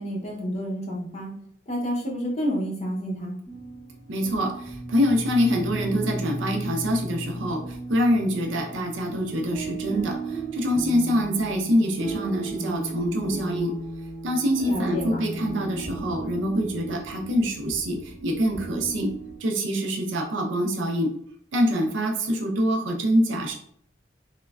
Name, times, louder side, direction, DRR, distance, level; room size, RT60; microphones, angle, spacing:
voice 1, 0.0-1.3 1.7-3.4 14.7-15.2, equal, 35° left, -3 dB, 0.6 m, -29 dB
sound 1, 3.5-19.4, right 2 dB, 5° left, 1.4 m, -35 dB
voice 2, 4.1-13.7 14.2-19.1 19.4-21.1 21.5-23.5, equal, 75° right, 2 dB, 0.5 m, -25 dB
3.1 x 2.1 x 2.3 m, 0.64 s
head